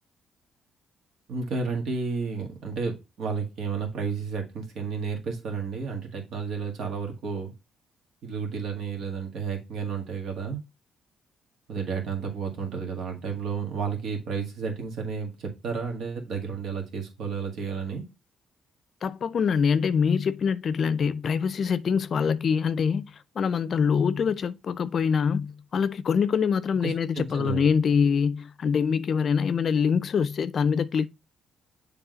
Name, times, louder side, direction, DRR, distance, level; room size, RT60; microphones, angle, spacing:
voice 1, 1.3-7.5 8.2-10.6 11.7-18.0 26.8-27.6, right 5 dB, 75° right, 1.8 m, -32 dB
voice 2, 19.0-31.1, left 6 dB, 55° left, 0.4 m, -24 dB
7.2 x 3.5 x 3.9 m
cardioid pair, 90°, 0 cm